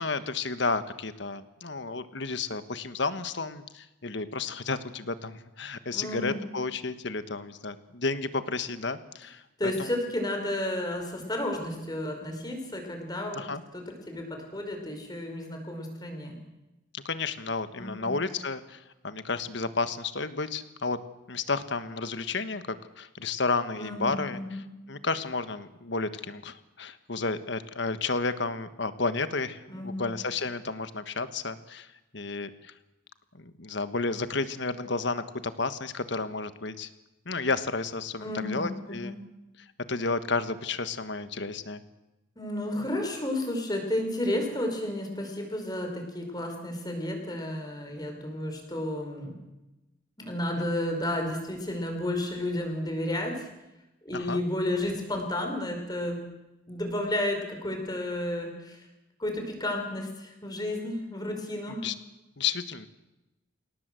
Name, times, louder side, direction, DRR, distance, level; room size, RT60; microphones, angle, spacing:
voice 1, 0.0-9.4 9.8-9.9 13.3-13.6 16.9-21.0 21.3-24.4 24.9-31.9 32.1-32.7 33.4-36.9 37.2-39.1 39.9-41.8 50.6-50.7 54.1-54.4 61.8-61.9 62.4-62.9, left 3 dB, 60° left, 12 dB, 1.5 m, -32 dB
voice 2, 5.9-6.4 9.6-16.4 17.8-18.2 23.8-24.6 29.7-30.1 38.2-39.3 42.4-49.4 50.2-53.5 54.0-56.2 56.7-58.9 59.2-61.9, left 1 dB, 20° left, 3 dB, 5.3 m, -32 dB
27.0 x 18.0 x 7.8 m, 0.98 s
head